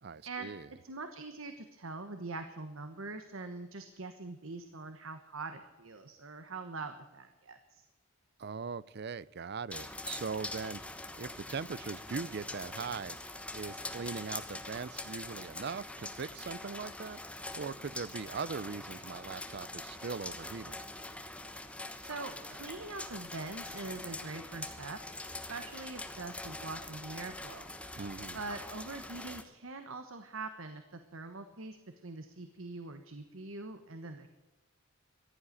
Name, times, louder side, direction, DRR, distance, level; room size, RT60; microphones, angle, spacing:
voice 1, 0.0-0.7 8.4-10.8 11.2-13.2 13.5-17.2 17.6-20.8 28.0-28.4, right 5 dB, 50° right, 19 dB, 0.5 m, -40 dB
voice 2, 0.8-7.8 22.0-25.0 25.5-27.7 28.3-31.8 32.0-34.3, right 3 dB, 70° right, 8 dB, 1.2 m, -43 dB
sound 1, 9.7-29.4, left 2 dB, 5° left, 1.1 m, -44 dB
14.5 x 11.0 x 7.4 m, 1.2 s
head